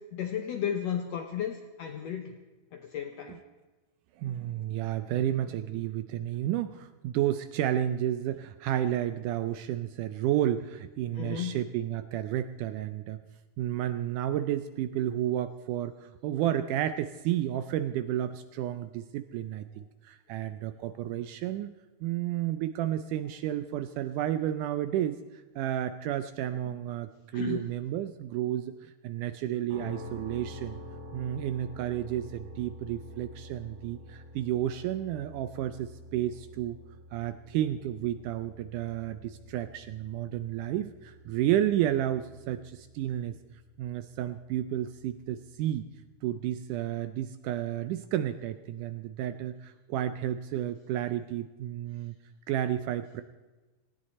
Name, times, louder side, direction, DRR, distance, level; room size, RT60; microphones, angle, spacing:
voice 1, 0.0-2.3 2.7-3.4 11.2-11.6 27.3-27.6, left 9 dB, 75° left, 5 dB, 1.5 m, -34 dB
voice 2, 4.2-13.2 13.6-21.7 22.0-25.2 25.6-30.8 31.1-36.8 37.1-43.4 43.8-45.9 46.2-52.2 52.5-53.2, right 12 dB, 80° right, 11 dB, 1.9 m, -31 dB
sound 1, 29.7-45.5, equal, 60° right, 4.3 m, -48 dB
18.5 x 16.5 x 4.2 m, 1.2 s
omnidirectional pair, 4.1 m